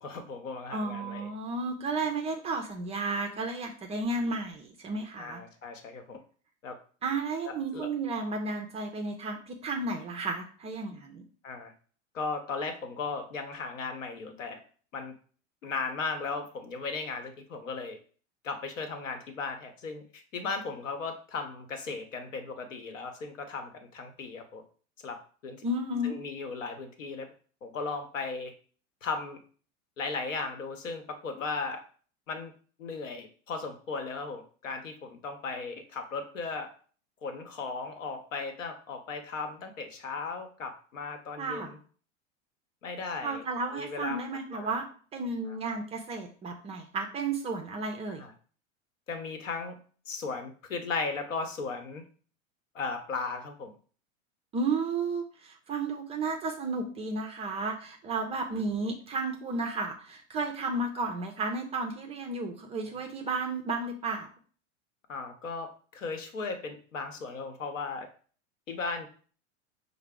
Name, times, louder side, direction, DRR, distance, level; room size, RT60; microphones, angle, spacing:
voice 1, 0.0-1.3 5.2-6.2 6.6-6.8 7.4-7.9 11.4-11.7 12.1-14.6 14.9-15.1 15.6-18.0 18.4-24.6 25.0-25.2 25.4-25.6 26.0-27.3 27.6-28.5 29.0-29.4 30.0-31.8 32.3-32.5 32.8-36.7 37.2-41.8 42.8-43.4 43.7-44.2 44.5-44.7 45.5-45.6 48.1-48.3 49.1-49.8 50.1-52.0 52.7-53.7 65.1-68.1 68.7-69.1, left 4 dB, 75° left, 6 dB, 0.9 m, -36 dB
voice 2, 0.7-5.4 7.0-11.2 25.6-26.2 41.4-41.7 43.2-44.8 45.1-48.2 54.5-64.3, right 3 dB, 15° right, 4 dB, 0.4 m, -33 dB
5.5 x 2.0 x 3.5 m, 0.42 s
figure-of-eight pair, 90°, 39 cm